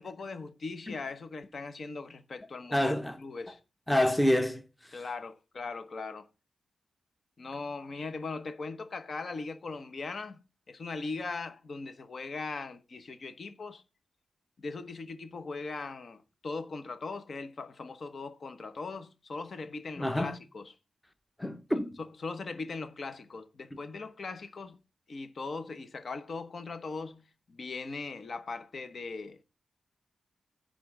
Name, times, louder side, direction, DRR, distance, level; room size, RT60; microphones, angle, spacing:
voice 1, 0.0-3.6 4.9-6.3 7.4-10.4 10.7-13.8 14.6-20.7 22.0-24.8 25.1-29.4, left 4 dB, 50° left, 1.1 m, -39 dB
voice 2, 2.7-3.2 3.9-4.6 20.0-20.4 21.4-21.9, left 1 dB, 10° left, 0.9 m, -27 dB
10.0 x 3.8 x 7.4 m
cardioid pair, 95°, 0 cm